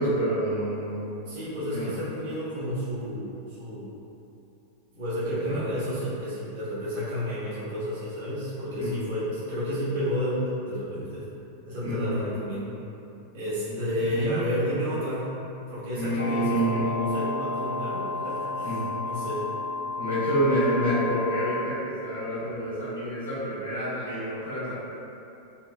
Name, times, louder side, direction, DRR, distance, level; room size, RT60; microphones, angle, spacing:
voice 1, 0.0-1.2 1.7-1.9 5.5-5.6 8.8-8.9 11.8-12.2 13.7-13.8 14.0-14.4 15.9-16.8 18.6-18.8 20.0-24.7, right 1 dB, 85° right, -13 dB, 1.1 m, -28 dB
voice 2, 1.3-3.9 4.9-11.3 11.7-12.8 13.3-15.3 15.7-19.5, equal, 45° right, -11 dB, 1.4 m, -31 dB
sound 1, 16.2-21.6, left 3 dB, 80° left, 0.5 m, -32 dB
3.2 x 3.0 x 2.4 m, 2.8 s
figure-of-eight pair, 90°, 0 cm